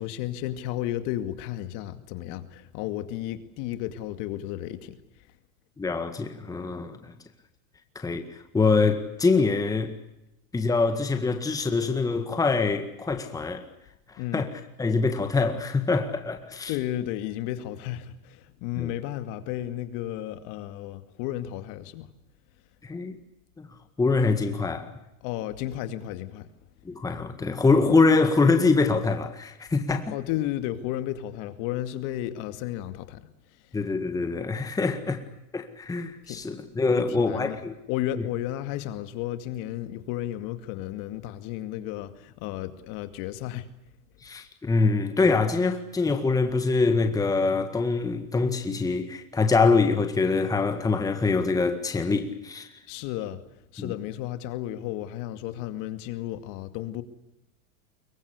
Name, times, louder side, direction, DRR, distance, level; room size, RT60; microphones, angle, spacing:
voice 1, 0.0-5.3 14.2-14.5 16.7-22.1 25.2-26.5 30.1-33.8 36.2-36.4 36.9-37.6 37.9-43.7 52.9-53.4 53.7-57.0, left 13 dB, 45° left, 2.4 m, -33 dB
voice 2, 5.8-7.2 8.0-9.9 10.5-13.6 14.1-14.5 14.8-16.7 18.8-18.9 22.8-23.2 23.6-23.7 24.0-24.9 26.9-30.1 33.7-35.2 35.5-37.7 44.2-52.7 53.8-53.9, left 4 dB, 10° left, 1.8 m, -24 dB
25.0 x 23.0 x 8.2 m
supercardioid pair, 145°, 43 cm